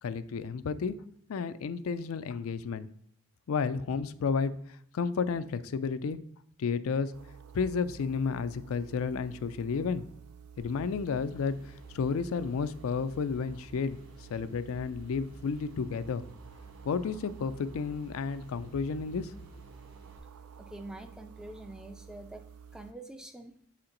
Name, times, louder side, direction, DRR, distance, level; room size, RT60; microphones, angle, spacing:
voice 1, 0.0-0.9 1.3-2.9 3.5-6.2 6.6-7.1 7.5-10.0 10.6-14.0 14.3-16.2 16.8-19.3, left 5 dB, 75° left, 13 dB, 0.4 m, -32 dB
sound 1, 7.1-22.9, right 7 dB, 90° right, 0.4 m, -51 dB
sound 2, 10.6-20.2, equal, 60° right, 2.2 m, -53 dB
voice 2, 20.6-22.4 22.7-23.5, right 1 dB, 5° right, 6 dB, 0.3 m, -45 dB
7.4 x 4.4 x 3.8 m, 0.66 s
head